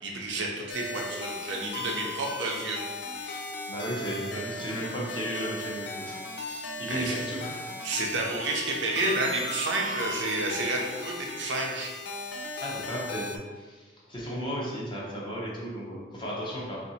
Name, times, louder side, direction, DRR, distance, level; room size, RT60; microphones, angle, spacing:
voice 1, 0.0-2.8 6.9-7.1 7.8-11.9, right 2 dB, 70° right, -1 dB, 0.7 m, -30 dB
sound 1, 0.7-13.4, left 2 dB, 60° left, 0.4 m, -37 dB
voice 2, 3.1-7.7 12.6-16.8, equal, 25° left, -5 dB, 0.9 m, -35 dB
3.8 x 2.6 x 4.2 m, 1.4 s
head